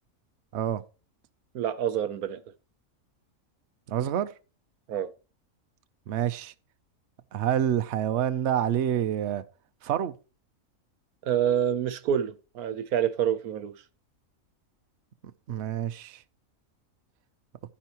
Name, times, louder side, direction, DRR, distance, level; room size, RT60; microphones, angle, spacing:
voice 1, 0.5-0.8 3.9-4.3 6.1-6.5 7.3-9.4 9.8-10.2 15.5-16.2, right 10 dB, 60° right, 0.9 m, -27 dB
voice 2, 1.5-2.4 4.9-5.1 11.2-13.8, right 9 dB, 80° right, 1.3 m, -27 dB
11.0 x 10.0 x 2.9 m
omnidirectional pair, 1.5 m